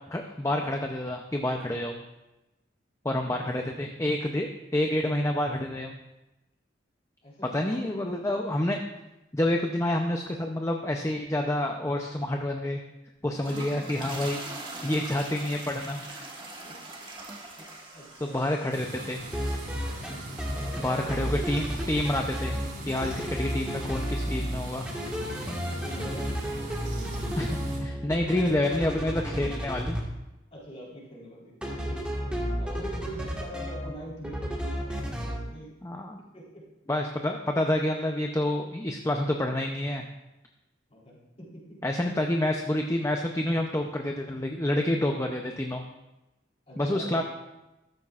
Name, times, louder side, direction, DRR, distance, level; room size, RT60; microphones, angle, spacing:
voice 1, 0.1-2.0 3.0-6.0 7.5-8.8 9.3-12.8 13.2-14.4 14.8-16.3 18.2-19.2 20.8-22.6 22.9-24.9 27.4-30.0 35.8-36.2 36.9-40.1 41.8-45.8 46.8-47.2, left 1 dB, 15° left, 3 dB, 0.6 m, -28 dB
voice 2, 3.3-3.6 7.2-8.3 13.5-13.6 16.6-16.8 17.6-18.8 20.5-21.4 25.5-26.4 26.8-27.2 28.2-28.4 30.5-35.7 36.3-36.6 40.9-41.8 46.7-47.2, equal, 35° left, -4 dB, 3.6 m, -44 dB
sound 1, 13.2-21.6, right 2 dB, 25° right, 1.8 m, -43 dB
sound 2, 18.7-27.8, right 1 dB, 70° right, 3.6 m, -40 dB
sound 3, 19.2-20.1 20.4-22.7 23.0-24.6 24.8-30.0 31.6-33.9 34.2-35.4, equal, 5° right, 1.6 m, -32 dB
13.5 x 13.0 x 2.5 m, 0.98 s
head